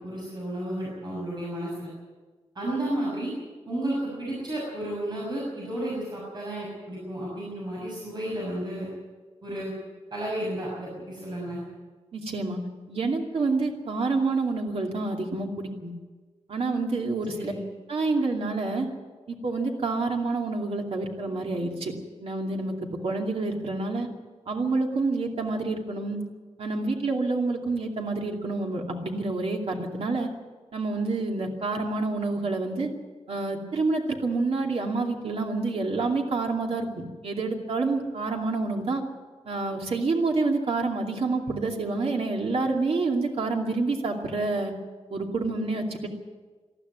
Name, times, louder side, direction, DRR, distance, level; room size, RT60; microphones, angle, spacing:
voice 1, 0.0-1.9 2.5-3.3 3.7-8.9 9.4-9.7 10.1-11.6 17.3-17.6, right 1 dB, 40° right, -5 dB, 6.5 m, -32 dB
voice 2, 12.1-12.6 12.9-15.9 16.5-17.5 17.9-18.9 19.3-21.9 22.2-22.7 23.0-24.1 24.5-26.2 26.6-30.3 30.7-32.9 33.3-39.0 39.5-44.7 45.1-46.1, right 3 dB, 60° right, 1 dB, 2.5 m, -28 dB
20.5 x 13.5 x 9.5 m, 1.3 s
wide cardioid pair, 165°, 11 cm